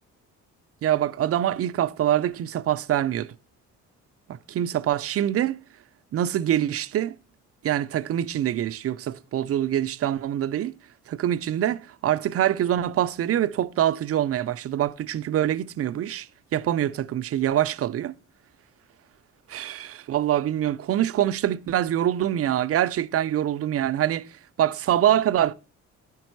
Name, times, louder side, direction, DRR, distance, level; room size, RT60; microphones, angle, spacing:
voice 1, 0.8-3.3 4.3-5.6 6.1-7.2 7.6-10.7 11.1-16.3 16.5-18.1 19.5-24.3 24.6-25.5, right 11 dB, 50° right, 0.5 m, -24 dB
10.5 x 5.2 x 4.5 m
cardioid pair, 90°, 30 cm